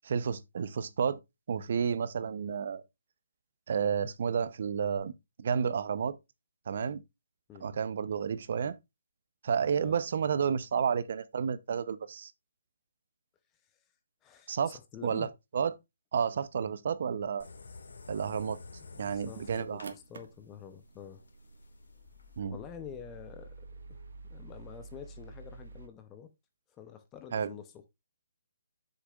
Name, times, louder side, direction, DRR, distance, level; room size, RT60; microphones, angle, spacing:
voice 1, 0.0-1.2 1.5-2.8 3.7-5.1 5.4-6.2 6.7-7.0 7.6-8.8 9.4-12.3 14.5-15.3 15.5-15.7 16.1-17.5 18.1-18.6 19.0-19.9 22.4-22.6 27.3-27.5, right 7 dB, 45° right, 0.6 m, -31 dB
voice 2, 14.2-14.6 14.9-15.3 18.9-21.2 22.5-23.5 23.9-24.0 24.3-26.3 26.7-27.9, left 8 dB, 15° left, 0.6 m, -48 dB
sound 1, 17.4-22.4, left 4 dB, 80° left, 1.8 m, -50 dB
sound 2, 18.3-25.9, right 3 dB, 70° right, 1.5 m, -50 dB
7.9 x 6.6 x 2.4 m
hypercardioid pair, 170°, 0 cm